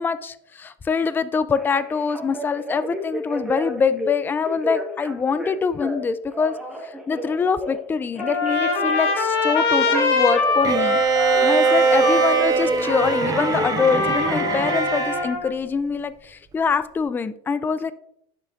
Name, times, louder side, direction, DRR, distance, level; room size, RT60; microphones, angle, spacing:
voice 1, 0.0-6.6 6.8-11.0 11.4-17.9, left 5 dB, 15° left, 14 dB, 0.4 m, -24 dB
Telephone, 1.6-4.1 4.4-6.0 6.3-7.8 8.2-11.6 11.9-14.0, equal, 5° right, 1.5 m, -33 dB
Trumpet, 8.2-15.5, left 4 dB, 85° left, 1.6 m, -23 dB
Bowed string instrument, 10.6-15.3, right 6 dB, 30° right, 0.6 m, -22 dB
10.5 x 5.7 x 2.6 m, 0.73 s
supercardioid pair, 115°, 13 cm